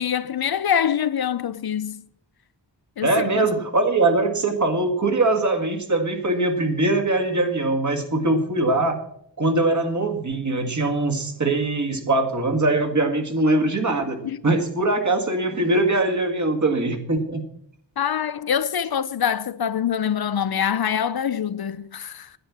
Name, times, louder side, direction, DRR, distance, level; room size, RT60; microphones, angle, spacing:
voice 1, 0.0-2.1 3.0-3.3 14.2-14.4 18.0-22.3, left 8 dB, 60° left, 0.5 m, -24 dB
voice 2, 3.0-9.0 9.4-17.4, right 2 dB, 40° right, 1.9 m, -22 dB
10.0 x 9.9 x 7.1 m
wide cardioid pair, 120°, 44 cm